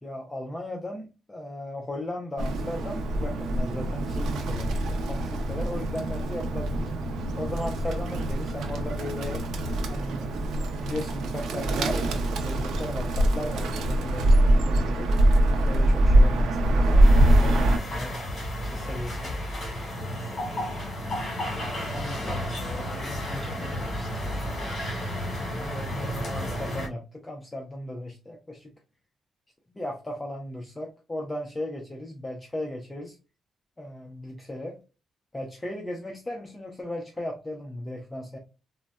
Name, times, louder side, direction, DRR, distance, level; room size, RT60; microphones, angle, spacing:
voice 1, 0.0-6.9 7.4-9.4 9.9-15.1 15.5-18.2 18.6-19.4 21.8-22.1 25.4-28.7 29.7-33.2 33.8-34.8 35.3-38.4, left 1 dB, 15° left, 1 dB, 0.5 m, -36 dB
Bird, 2.4-17.8, right 1 dB, 85° right, 0.5 m, -23 dB
sound 1, 17.0-26.9, left 1 dB, 40° left, 1.5 m, -32 dB
voice 2, 21.5-24.3, left 1 dB, 10° right, -3 dB, 1.7 m, -41 dB
3.8 x 2.1 x 2.2 m, 0.30 s
cardioid pair, 125°, 0 cm